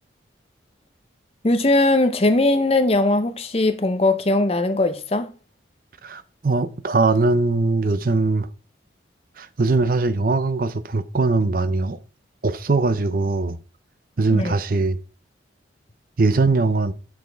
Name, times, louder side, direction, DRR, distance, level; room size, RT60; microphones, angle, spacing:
voice 1, 1.4-5.3 14.3-14.5, left 2 dB, 30° left, 0.6 m, -19 dB
voice 2, 6.0-8.5 9.4-12.0 12.4-13.6 14.2-15.0 16.2-16.9, right 3 dB, 45° right, 0.5 m, -21 dB
6.9 x 6.2 x 3.4 m
head